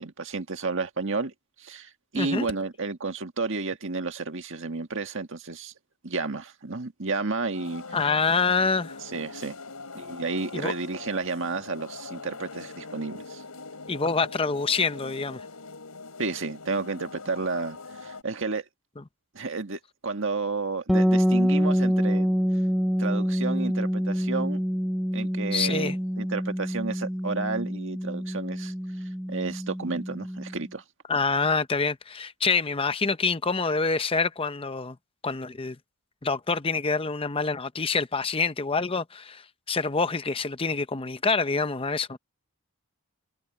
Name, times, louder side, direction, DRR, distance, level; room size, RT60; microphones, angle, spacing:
voice 1, 0.0-5.7 6.0-7.8 9.0-9.6 9.9-13.4 16.2-18.7 19.3-22.3 23.0-24.6 25.1-28.7 29.0-30.8, right 3 dB, 60° right, 1.8 m, -31 dB
voice 2, 2.1-2.5 7.9-9.0 10.5-10.7 13.9-15.5 25.5-26.0 31.1-35.0 35.2-35.8 36.2-42.2, left 4 dB, 25° left, 0.7 m, -26 dB
sound 1, 7.5-18.2, left 3 dB, 85° left, 4.3 m, -42 dB
sound 2, 20.9-30.6, equal, ahead, 1.2 m, -26 dB
head